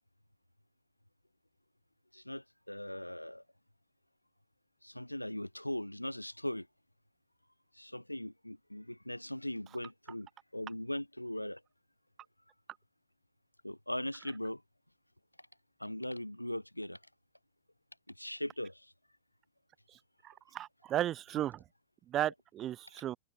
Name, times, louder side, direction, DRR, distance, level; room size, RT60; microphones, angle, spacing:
voice 1, 2.1-3.4 4.8-6.7 7.7-11.6 13.6-14.6 15.8-17.0 18.1-18.9, left 1 dB, 90° left, 2.1 m, -39 dB
voice 2, 20.2-21.6 22.1-23.2, right 12 dB, 30° right, 2.7 m, -35 dB
figure-of-eight pair, 90°, 0 cm